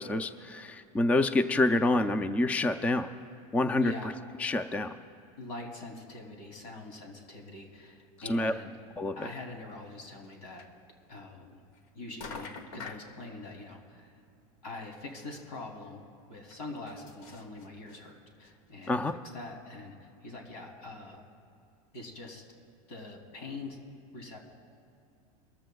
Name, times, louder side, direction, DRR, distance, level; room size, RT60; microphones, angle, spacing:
voice 1, 0.0-3.1 3.5-3.9 4.4-4.9 8.3-8.5 9.0-9.2 18.9-19.1, left 2 dB, 5° left, 11 dB, 0.3 m, -27 dB
voice 2, 3.8-4.2 5.4-8.7 9.2-10.7 11.1-11.6 11.9-14.2 14.6-16.0 16.3-21.2 21.9-22.4 22.9-23.8 24.1-24.5, left 2 dB, 85° left, 1 dB, 2.9 m, -44 dB
sound 1, 10.2-10.3 10.6-10.7 11.7-11.9 12.2-13.1 14.6-14.7 15.1-15.2 15.4-15.5 16.5-18.0 18.4-18.5 18.8-18.9, left 4 dB, 70° left, 1.2 m, -45 dB
22.0 x 14.0 x 2.3 m, 2.6 s
supercardioid pair, 130°, 19 cm